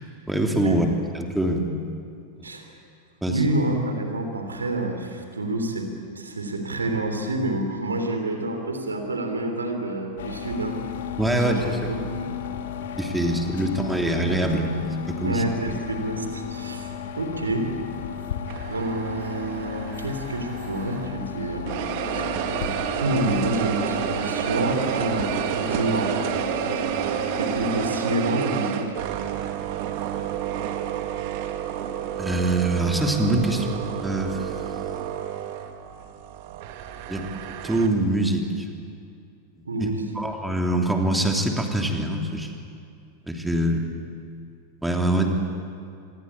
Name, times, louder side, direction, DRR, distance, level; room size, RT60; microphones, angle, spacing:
voice 1, 0.3-0.9 1.1-1.7 2.4-2.5 3.2-3.3 11.2-11.9 13.0-14.7 15.1-15.4 32.1-34.5 37.1-37.3 37.6-38.7 39.8-39.9 40.1-42.5 43.3-43.8 44.8-45.3, right 1 dB, 5° right, 2 dB, 3.2 m, -24 dB
voice 2, 3.3-5.9 6.2-10.8 11.3-12.3 13.5-13.6 15.2-17.7 18.7-21.8 22.0-22.5 23.0-26.1 26.8-27.0 27.4-29.0 39.7-40.2, right 1 dB, 75° right, 5 dB, 3.5 m, -28 dB
sound 1, 10.2-28.1, left 8 dB, 60° left, 1.9 m, -35 dB
sound 2, 18.5-21.3 21.7-37.9, right 10 dB, 45° right, 1.8 m, -30 dB
26.0 x 22.0 x 8.8 m, 2.4 s
figure-of-eight pair, 90°, 0 cm